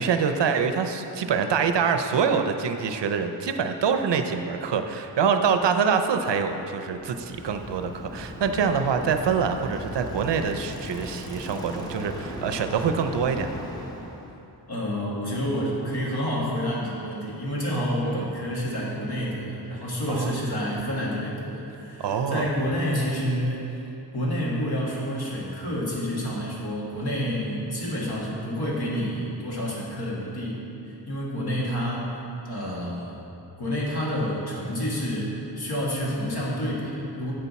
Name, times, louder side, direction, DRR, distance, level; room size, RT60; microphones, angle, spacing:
voice 1, 0.0-13.5 18.1-18.2 20.1-20.4 22.0-22.5 31.3-31.6, right 6 dB, 80° right, 7 dB, 0.5 m, -25 dB
Bicycle, 6.8-14.3, equal, 10° left, 0.8 m, -38 dB
voice 2, 14.7-23.8 24.1-32.2 32.5-33.3 33.6-37.3, equal, 65° left, -5 dB, 1.7 m, -29 dB
7.8 x 5.7 x 4.0 m, 2.9 s
wide cardioid pair, 90°, 42 cm